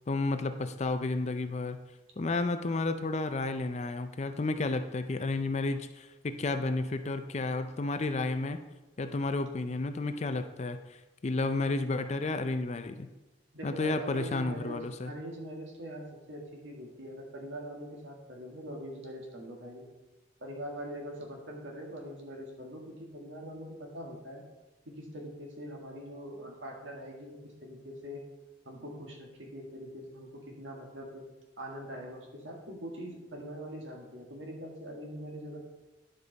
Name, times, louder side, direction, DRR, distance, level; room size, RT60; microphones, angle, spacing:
voice 1, 0.1-1.8 2.2-8.6 9.0-13.1 13.6-15.1, left 2 dB, 35° left, 9 dB, 0.4 m, -32 dB
voice 2, 13.5-19.8 20.4-24.4 24.9-28.3 28.7-31.3 31.6-35.6, equal, 75° right, 0 dB, 1.8 m, -43 dB
11.0 x 5.2 x 4.0 m, 1.1 s
head